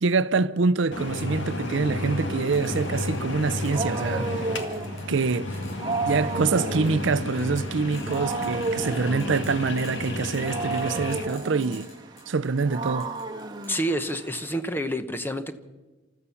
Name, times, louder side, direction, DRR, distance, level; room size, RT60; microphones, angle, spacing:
voice 1, 0.0-4.5 5.1-5.5 6.1-11.9 12.3-13.1, right 4 dB, 65° right, 0.5 m, -25 dB
sound 1, 0.9-11.2, left 2 dB, 65° left, 2.0 m, -32 dB
sound 2, 1.2-1.3 2.5-3.9 4.6-5.2 5.5-6.4 6.8-7.0 7.4-8.9 9.2-12.6 13.0-13.8, left 2 dB, 85° left, 7.5 m, -51 dB
Wild animals, 3.3-14.5, right 3 dB, 20° right, 1.4 m, -33 dB
voice 2, 13.7-15.5, equal, 10° left, 0.9 m, -28 dB
27.5 x 14.0 x 7.1 m
head